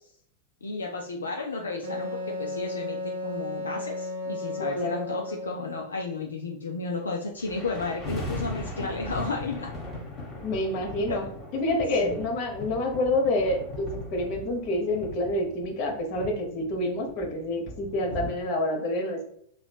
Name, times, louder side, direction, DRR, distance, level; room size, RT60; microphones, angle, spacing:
voice 1, 0.6-9.7 11.1-11.3 12.0-12.3, left 3 dB, 75° left, 1 dB, 0.3 m, -33 dB
Wind instrument woodwind instrument, 1.8-5.9, left 1 dB, 50° right, 0.8 m, -34 dB
voice 2, 4.6-5.1 10.4-11.3 11.5-19.3, left 1 dB, 45° left, 2 dB, 0.8 m, -28 dB
sound 1, 7.4-18.3, left 1 dB, 20° left, 1.0 m, -38 dB
2.9 x 2.9 x 2.2 m, 0.68 s
figure-of-eight pair, 90°, 0 cm